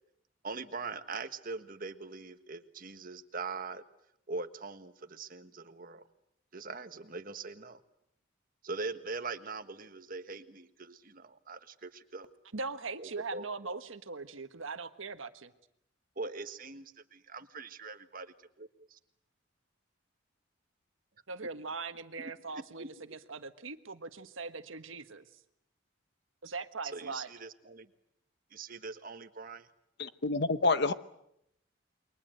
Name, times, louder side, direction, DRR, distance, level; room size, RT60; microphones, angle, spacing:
voice 1, 0.4-3.8 4.3-6.0 6.5-7.8 8.6-12.3 13.0-13.5 16.2-19.0 22.2-22.9 26.9-27.9 28.5-29.7, right 4 dB, 45° right, 1.5 m, -42 dB
voice 2, 12.5-15.5 21.3-25.2 26.4-27.3, right 4 dB, 85° right, 1.5 m, -40 dB
voice 3, 30.0-30.9, left 3 dB, 55° left, 1.1 m, -28 dB
29.0 x 23.0 x 7.8 m
head